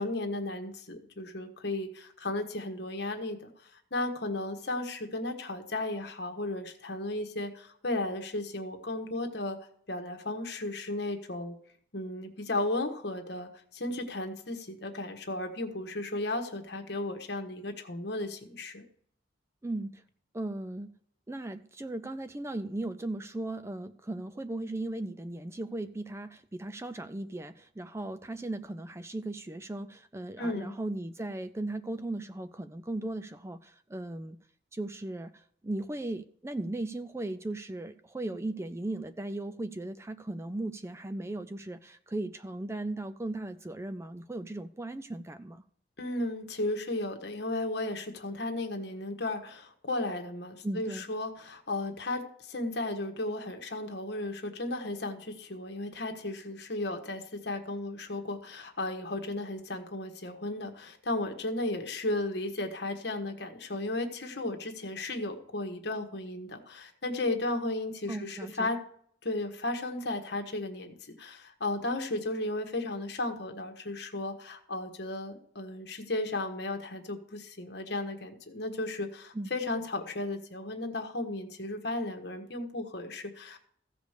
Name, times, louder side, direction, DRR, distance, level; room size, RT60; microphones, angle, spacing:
voice 1, 0.0-3.5 3.9-9.6 9.9-11.6 11.9-18.8 30.4-30.8 46.0-68.8 69.2-83.6, left 2 dB, 60° left, 4 dB, 1.5 m, -34 dB
voice 2, 19.6-20.0 20.3-20.9 21.3-34.4 34.7-45.6 50.6-51.1 68.1-68.7 79.3-79.5, right 2 dB, 15° right, 11 dB, 0.4 m, -37 dB
15.0 x 5.2 x 6.6 m, 0.63 s
head